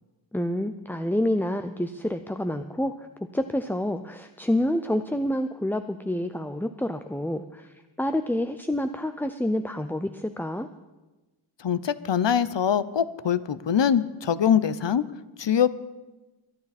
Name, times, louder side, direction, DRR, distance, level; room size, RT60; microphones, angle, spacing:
voice 1, 0.3-3.1 3.3-10.7, left 1 dB, 5° left, 8 dB, 0.5 m, -28 dB
voice 2, 11.6-15.0 15.4-15.7, left 8 dB, 65° left, 16 dB, 0.7 m, -23 dB
23.0 x 9.7 x 4.2 m, 1.1 s
wide cardioid pair, 45°, 47 cm